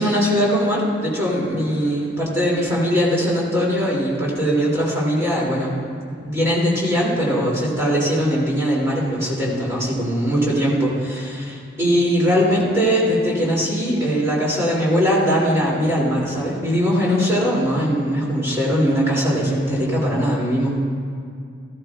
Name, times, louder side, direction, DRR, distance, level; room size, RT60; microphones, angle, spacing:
voice 1, 0.0-5.7 6.1-20.8, equal, 15° right, -6 dB, 2.6 m, -20 dB
15.0 x 14.0 x 2.4 m, 2.3 s
head